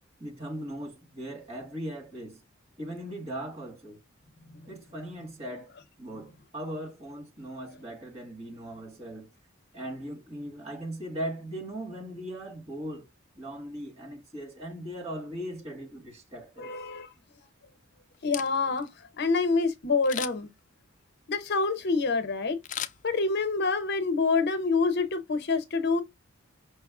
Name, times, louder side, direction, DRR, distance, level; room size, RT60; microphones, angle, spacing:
voice 1, 0.2-2.4 2.8-4.0 4.7-5.7 6.0-9.3 9.7-13.1 13.3-16.7, right 1 dB, 30° right, 1.6 m, -39 dB
voice 2, 16.6-17.1 18.2-18.9 19.2-20.5 21.3-22.6 23.0-26.0, left 4 dB, 55° left, 0.7 m, -26 dB
Camera, 18.1-18.9 20.0-20.6 22.6-23.6 24.0-24.1, left 10 dB, 40° left, 0.3 m, -37 dB
5.3 x 2.0 x 3.5 m
head